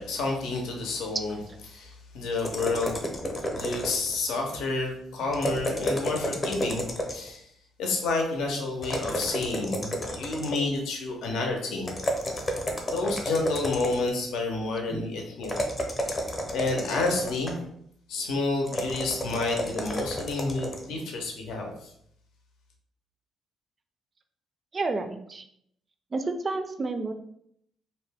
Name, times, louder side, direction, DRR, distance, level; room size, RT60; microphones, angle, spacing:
voice 1, 0.0-1.4 1.7-3.0 3.4-7.4 7.8-11.9 12.9-15.5 16.1-16.2 16.5-17.6 18.1-21.9, left 3 dB, 85° left, 1 dB, 0.6 m, -30 dB
sound 1, 2.4-4.3 5.3-7.4 8.8-10.8 11.8-14.2 15.4-17.7 18.7-20.9, equal, 30° left, 0.6 m, -31 dB
voice 2, 24.7-25.4 26.1-27.1, right 3 dB, 35° right, 7 dB, 0.4 m, -31 dB
2.6 x 2.2 x 3.3 m, 0.71 s
cardioid pair, 90°, 0 cm